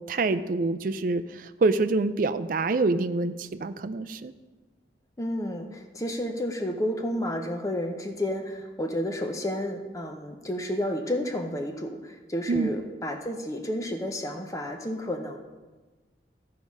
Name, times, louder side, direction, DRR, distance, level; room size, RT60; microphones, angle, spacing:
voice 1, 0.1-4.3 12.5-12.7, right 3 dB, 45° right, 12 dB, 0.4 m, -26 dB
voice 2, 5.2-15.4, equal, 20° left, 4 dB, 0.6 m, -31 dB
14.0 x 4.8 x 5.3 m, 1.3 s
head